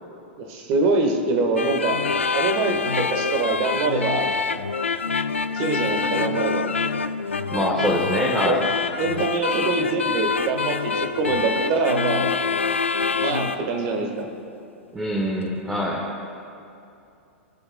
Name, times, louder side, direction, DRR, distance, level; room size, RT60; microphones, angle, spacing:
voice 1, 0.4-2.0 2.3-4.2 5.5-6.6 8.4-8.6 9.0-10.8 11.1-12.2 13.2-14.3, right 3 dB, 40° right, 3 dB, 1.4 m, -24 dB
sound 1, 1.6-13.6, left 5 dB, 80° left, 0.4 m, -26 dB
voice 2, 7.5-8.6 14.9-16.0, equal, 10° right, -3 dB, 1.2 m, -24 dB
20.0 x 6.9 x 2.2 m, 2.6 s
figure-of-eight pair, 95°, 7 cm